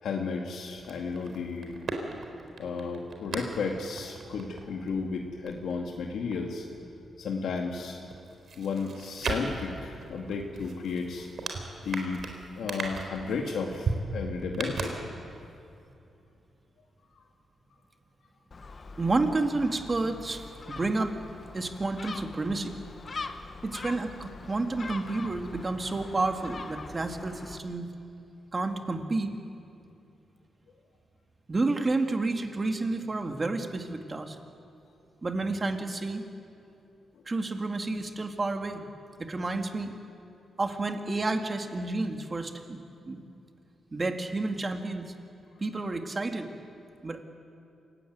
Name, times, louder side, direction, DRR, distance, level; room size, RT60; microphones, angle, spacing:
voice 1, 0.0-1.8 2.6-6.7 7.2-8.0 8.6-11.3 11.8-12.2 12.6-15.1 17.1-17.2, left 4 dB, 80° left, 1 dB, 2.1 m, -33 dB
sound 1, 0.7-7.2 7.6-15.5 15.8-15.9, right 3 dB, 60° right, 3.7 m, -38 dB
Gull seagull, 18.5-27.6, left 4 dB, 40° left, 1.3 m, -43 dB
voice 2, 19.0-21.2 21.5-22.8 23.2-23.3 23.6-27.9 28.5-29.3 31.5-34.4 35.2-36.2 37.3-38.9 39.2-39.9 40.6-42.8 43.1-43.2 43.9-45.1 45.6-46.5 47.0-47.2, right 3 dB, 30° right, 5 dB, 2.1 m, -30 dB
27.0 x 16.5 x 9.5 m, 2.7 s
cardioid pair, 105°, 0 cm